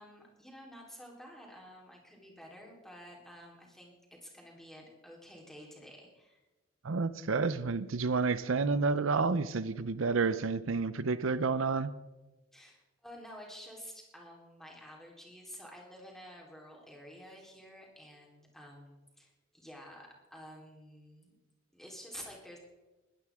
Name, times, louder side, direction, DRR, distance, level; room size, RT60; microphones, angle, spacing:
voice 1, 0.0-3.9 4.2-6.4 12.5-21.3 21.7-22.6, equal, ahead, -2 dB, 3.7 m, -51 dB
voice 2, 6.8-11.9, right 4 dB, 80° right, 14 dB, 0.7 m, -30 dB
21.5 x 12.0 x 3.7 m, 1.1 s
head